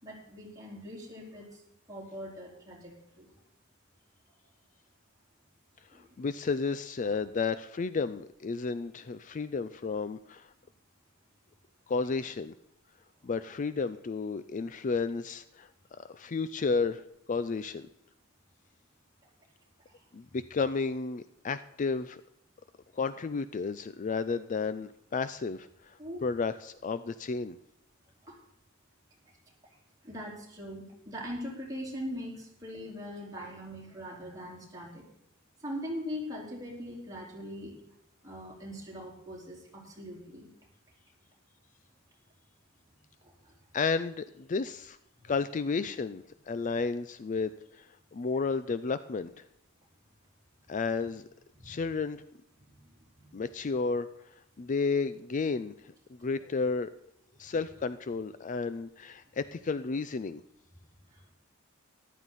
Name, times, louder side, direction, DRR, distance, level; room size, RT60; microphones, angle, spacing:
voice 1, 0.0-1.6 1.9-3.3 5.9-6.1 19.9-20.0 26.0-26.2 28.2-28.4 30.0-35.0 35.6-37.7 38.2-40.5 43.2-43.5 45.2-45.3 51.6-51.7 52.6-53.3 61.1-61.3, equal, 15° right, -3 dB, 4.1 m, -41 dB
voice 2, 5.9-10.5 11.9-12.5 13.2-17.0 17.3-17.9 20.1-22.2 22.9-27.6 43.7-45.0 45.2-47.9 48.1-49.3 50.7-51.3 51.6-52.2 53.3-54.1 54.6-56.9 57.4-60.4, left 4 dB, 40° left, 13 dB, 0.4 m, -32 dB
13.5 x 12.0 x 4.1 m, 0.76 s
head